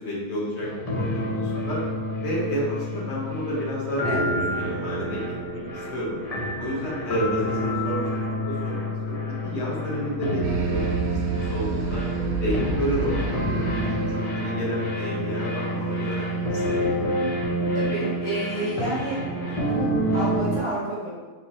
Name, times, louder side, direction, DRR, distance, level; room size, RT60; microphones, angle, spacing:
voice 1, 0.0-1.8 2.2-6.2 6.6-12.0 12.4-17.0, equal, 50° left, -6 dB, 1.1 m, -31 dB
sound 1, 0.6-20.6, equal, 70° left, 0.3 m, -28 dB
sound 2, 10.4-15.4, right 2 dB, 70° right, 1.0 m, -30 dB
voice 2, 17.7-19.2 19.5-21.1, right 1 dB, 45° right, -9 dB, 0.4 m, -30 dB
3.8 x 3.0 x 2.9 m, 1.4 s
omnidirectional pair, 1.7 m